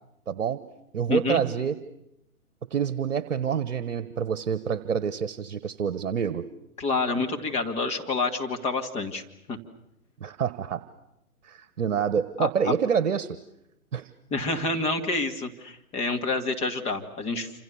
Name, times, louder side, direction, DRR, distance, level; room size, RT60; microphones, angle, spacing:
voice 1, 0.3-0.6 0.9-1.8 2.7-6.4 10.2-10.8 11.4-13.4 13.9-14.1, right 7 dB, 55° right, 14 dB, 1.4 m, -27 dB
voice 2, 1.1-1.4 6.8-9.2 9.5-9.6 12.4-12.8 14.3-17.6, left 3 dB, 15° left, 4 dB, 2.0 m, -28 dB
28.0 x 27.0 x 7.1 m, 0.83 s
figure-of-eight pair, 130°, 45 cm